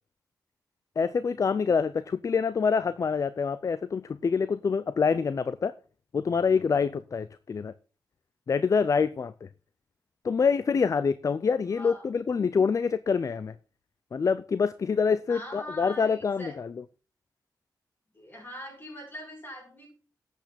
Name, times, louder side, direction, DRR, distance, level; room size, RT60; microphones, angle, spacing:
voice 1, 1.0-5.7 6.1-7.7 8.5-9.5 10.2-13.5 14.1-16.7, left 5 dB, 50° left, 0.5 m, -26 dB
voice 2, 11.7-12.1 15.3-16.6 18.1-19.9, equal, 30° left, 7.0 m, -42 dB
12.5 x 8.3 x 4.2 m
wide cardioid pair, 100°, 7 cm